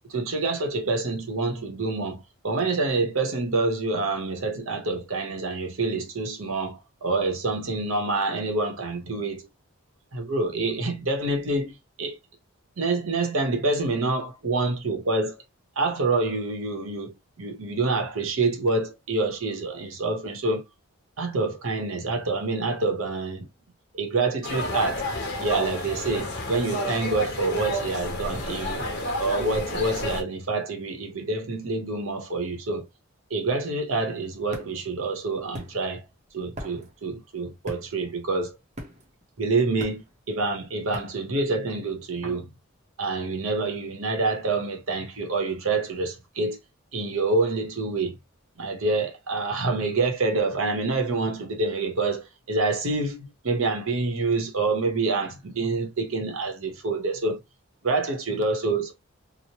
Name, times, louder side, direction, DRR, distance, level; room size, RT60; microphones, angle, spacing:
voice 1, 0.1-9.5 10.1-12.2 12.8-15.4 15.8-20.6 21.2-23.5 23.9-25.1 25.4-28.8 29.2-32.9 33.3-36.1 36.3-38.6 39.4-42.5 43.0-46.6 46.9-48.2 48.6-57.4 57.8-58.9, right 3 dB, 80° right, 0.8 m, -27 dB
sound 1, 24.4-30.2, left 1 dB, 50° left, 1.0 m, -30 dB
sound 2, 34.3-42.1, equal, 35° right, 0.6 m, -42 dB
3.0 x 2.0 x 2.8 m
head